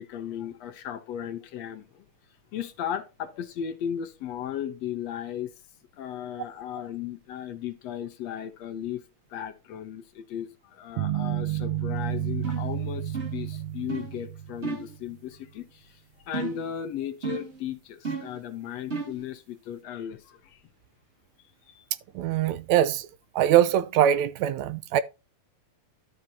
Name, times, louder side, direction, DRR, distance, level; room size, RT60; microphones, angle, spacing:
voice 1, 0.0-2.0 2.5-5.5 6.0-9.0 9.3-16.0 16.3-20.6 21.7-21.9, left 9 dB, 70° left, 2.0 m, -36 dB
sound 1, 11.0-15.2, right 12 dB, 60° right, 1.7 m, -31 dB
sound 2, 12.4-12.7 13.1-13.5 13.9-14.1 14.6-14.9 16.3-16.7 17.2-17.6 18.0-18.4 18.9-19.2, right 4 dB, 25° right, 2.0 m, -33 dB
voice 2, 22.2-23.1 23.4-25.0, right 11 dB, 80° right, 1.8 m, -22 dB
12.0 x 6.5 x 2.8 m
omnidirectional pair, 3.4 m